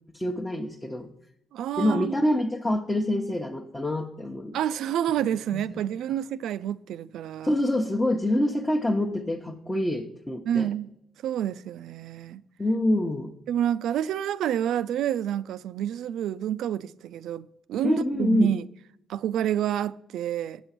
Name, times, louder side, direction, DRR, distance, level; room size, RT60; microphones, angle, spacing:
voice 1, 0.1-1.1 1.8-4.6 5.5-5.8 7.4-10.7 12.6-13.3 17.8-18.5, left 1 dB, 10° left, 0.9 m, -26 dB
voice 2, 1.5-2.1 4.5-7.5 10.5-10.9 11.2-12.4 13.5-18.7 19.1-20.6, right 10 dB, 80° right, 0.3 m, -28 dB
7.9 x 6.1 x 5.8 m
cardioid pair, 90°, 0 cm